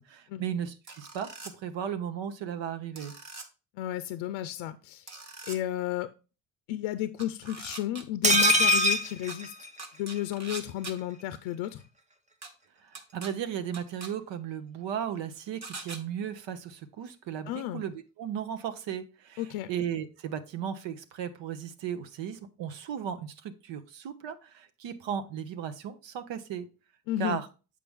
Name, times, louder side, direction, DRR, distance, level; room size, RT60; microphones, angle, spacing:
voice 1, 0.1-3.1 12.8-19.4 19.7-26.7 27.2-27.5, right 8 dB, 65° right, 10 dB, 0.9 m, -36 dB
sound 1, 0.9-1.5 3.0-3.5 5.1-5.6 7.2-8.3 9.3-9.4 9.8-10.9 12.4-12.5 12.9-13.3 13.7-14.1 15.6-16.0, right 3 dB, 35° right, 1.3 m, -42 dB
voice 2, 3.8-5.1 5.5-6.1 6.7-9.5 10.0-11.8 17.5-17.8 19.4-19.7 27.1-27.4, left 13 dB, 80° left, 11 dB, 0.6 m, -33 dB
sound 2, 8.2-10.2 10.5-10.6 10.9-11.0, equal, 15° right, 0.7 m, -23 dB
6.9 x 4.9 x 3.5 m, 0.32 s
supercardioid pair, 75°, 47 cm